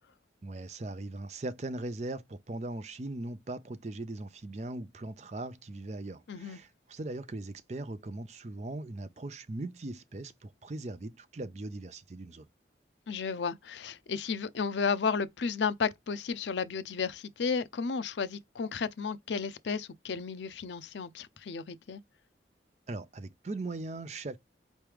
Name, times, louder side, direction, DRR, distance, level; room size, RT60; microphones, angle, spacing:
voice 1, 0.4-12.5 22.9-24.4, right 2 dB, 40° right, 0.5 m, -39 dB
voice 2, 6.3-6.6 13.1-22.0, left 5 dB, 80° left, 0.5 m, -33 dB
4.6 x 3.1 x 3.4 m
head